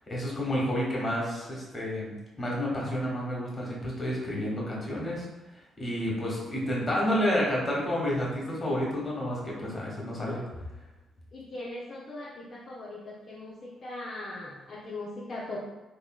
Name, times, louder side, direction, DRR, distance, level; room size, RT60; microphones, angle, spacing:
voice 1, 0.1-5.2 5.8-10.4, equal, 30° left, -4 dB, 1.1 m, -30 dB
voice 2, 11.3-15.6, left 2 dB, 50° left, -5 dB, 0.5 m, -39 dB
3.0 x 2.6 x 2.3 m, 1.1 s
hypercardioid pair, 40°, 0 cm